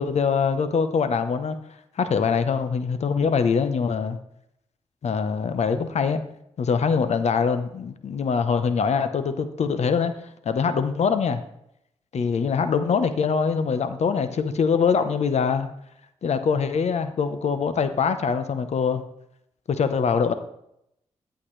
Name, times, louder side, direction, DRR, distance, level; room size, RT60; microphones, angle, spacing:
voice 1, 0.0-1.6 2.0-4.2 5.0-6.2 6.6-10.1 10.4-11.4 12.1-15.7 16.2-19.0 19.7-20.3, left 6 dB, 70° left, 10 dB, 1.0 m, -23 dB
11.5 x 8.3 x 3.3 m, 0.77 s
cardioid pair, 70°, 12 cm